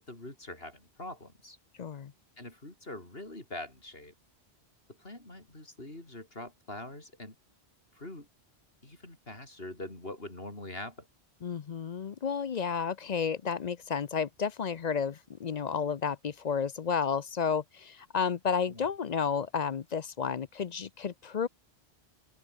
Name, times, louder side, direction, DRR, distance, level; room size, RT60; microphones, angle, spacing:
voice 1, 0.0-1.6 2.4-4.1 5.0-7.4 7.9-8.3 8.8-11.1 18.7-18.9, left 1 dB, 65° left, 5.4 m, -44 dB
voice 2, 1.8-2.1 11.4-21.5, left 6 dB, 50° left, 0.6 m, -32 dB
open air
omnidirectional pair, 1.1 m